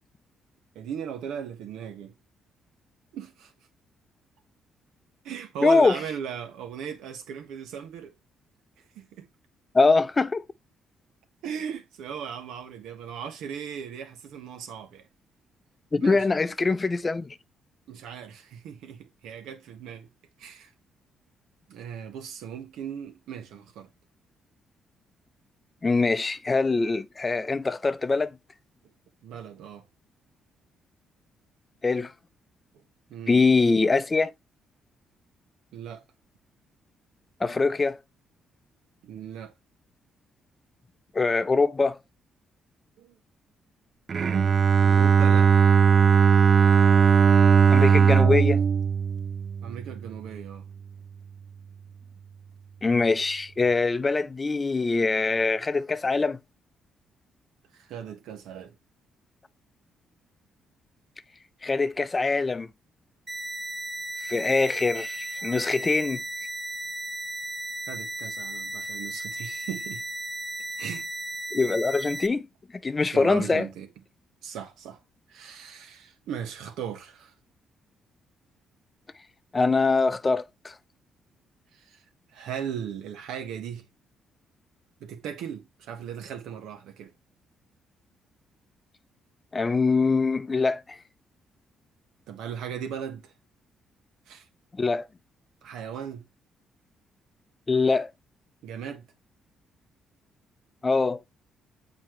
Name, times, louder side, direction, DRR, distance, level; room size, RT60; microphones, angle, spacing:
voice 1, 0.7-2.1 3.1-3.5 5.2-8.1 8.9-9.3 11.4-15.1 16.0-16.3 17.9-20.1 20.4-20.7 21.7-23.9 29.2-29.8 33.1-33.4 35.7-36.0 39.0-39.5 43.0-43.2 44.8-45.5 49.6-50.7 57.7-58.7 65.4-65.6 67.9-70.0 70.8-71.1 73.1-73.9 74.4-75.0 75.3-77.3 81.7-82.0 82.3-83.9 85.0-87.1 92.3-93.3 94.3-94.5 95.6-96.3 98.6-99.1, right 8 dB, 85° right, 1.3 m, -37 dB
voice 2, 5.6-6.0 9.7-10.4 15.9-17.3 25.8-28.4 31.8-32.1 33.3-34.3 37.4-38.0 41.1-42.0 47.7-48.6 52.8-56.4 61.6-62.7 64.2-66.2 71.5-72.5 72.8-73.7 79.5-80.7 89.5-91.0 94.8-95.1 97.7-98.1 100.8-101.2, left 3 dB, 25° left, 0.5 m, -23 dB
Bowed string instrument, 44.1-50.1, right 6 dB, 50° right, 0.4 m, -19 dB
sound 1, 63.3-72.3, right 1 dB, 20° right, 0.8 m, -35 dB
7.3 x 4.3 x 3.1 m
cardioid pair, 90°, 0 cm